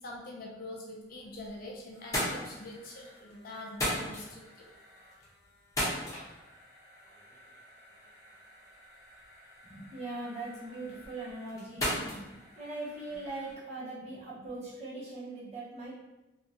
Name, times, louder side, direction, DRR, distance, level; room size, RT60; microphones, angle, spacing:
voice 1, 0.0-4.7, left 2 dB, 55° left, -2 dB, 0.6 m, -44 dB
sound 1, 1.1-1.6 1.9-13.5, equal, 20° left, 0.9 m, -39 dB
voice 2, 9.6-12.3 12.5-15.9, right 2 dB, 40° right, -9 dB, 1.1 m, -41 dB
3.0 x 2.6 x 2.7 m, 1.0 s
head